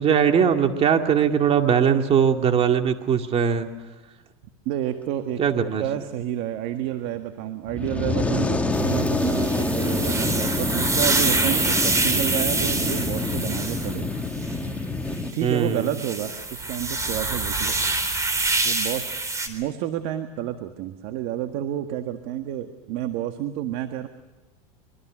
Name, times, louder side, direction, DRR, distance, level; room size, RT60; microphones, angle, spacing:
voice 1, 0.0-3.7 5.4-5.8 15.4-15.9, right 7 dB, 35° right, 5 dB, 2.3 m, -20 dB
voice 2, 4.7-14.1 15.3-17.8 18.6-19.1 19.5-24.1, right 11 dB, 60° right, 7 dB, 1.7 m, -30 dB
Fire, 7.7-15.3, left 2 dB, 10° left, 2.0 m, -26 dB
sound 1, 8.7-14.6 15.2-15.3 15.7-19.5, right 3 dB, 15° right, 4.0 m, -26 dB
25.5 x 24.0 x 6.3 m, 1.1 s
supercardioid pair, 115°, 18 cm